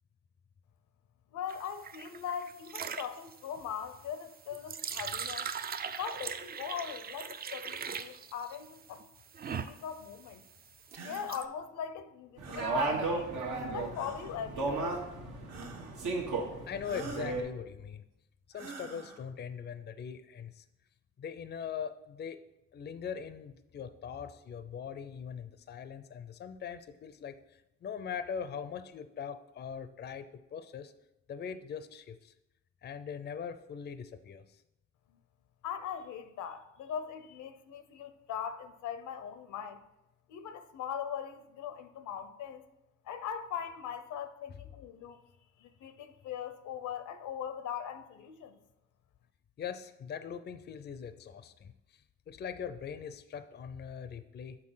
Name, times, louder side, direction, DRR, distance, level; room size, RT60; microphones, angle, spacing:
voice 1, 1.3-5.5 6.0-9.1 9.5-10.4 11.0-13.3 13.7-15.0 35.6-39.8 40.3-42.6 43.0-45.2 45.6-48.6, left 8 dB, 80° left, 0.7 m, -40 dB
sound 1, 1.5-11.4, right 7 dB, 30° right, 0.4 m, -40 dB
sound 2, 10.9-11.3 12.4-12.8 13.9-14.4 15.5-16.0 16.8-17.3 18.5-19.2, right 3 dB, 60° right, 1.2 m, -45 dB
sound 3, 12.4-17.4, right 3 dB, 80° right, 1.4 m, -35 dB
voice 2, 16.7-18.0 18.5-20.6 21.2-22.4 22.7-27.4 27.8-30.9 31.3-32.3 32.8-34.4 44.5-44.6 49.6-51.7 52.3-54.6, left 7 dB, 35° left, 0.5 m, -41 dB
6.5 x 4.2 x 5.6 m
cardioid pair, 90°, 30 cm